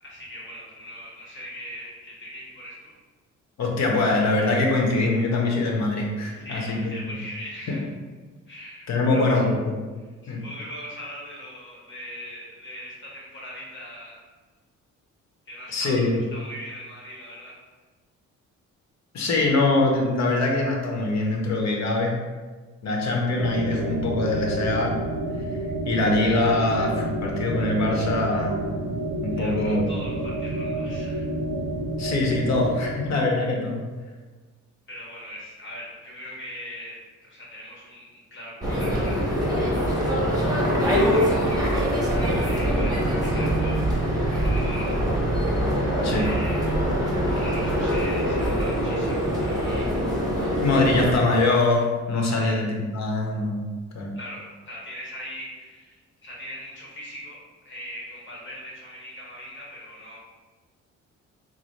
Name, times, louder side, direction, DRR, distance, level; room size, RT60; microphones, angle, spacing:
voice 1, 0.0-2.9 6.4-7.8 8.5-9.4 10.2-14.2 15.5-17.5 29.3-31.2 34.9-39.7 40.7-43.8 44.3-44.9 46.1-46.8 47.2-50.5 52.4-52.6 54.1-60.2, equal, 40° left, -5 dB, 1.3 m, -40 dB
voice 2, 3.6-6.9 7.7-7.8 8.9-9.6 10.3-10.4 15.7-16.2 19.1-22.2 22.8-24.9 25.8-28.7 29.2-29.9 32.0-33.8 46.0-46.2 50.6-53.7 53.9-54.1, left 2 dB, 60° left, 0 dB, 1.0 m, -23 dB
sound 1, 23.4-33.3, right 1 dB, 40° right, 0.6 m, -29 dB
sound 2, 38.6-51.1, equal, 10° right, 1.2 m, -23 dB
6.0 x 2.1 x 3.2 m, 1.3 s
cardioid pair, 90°, 30 cm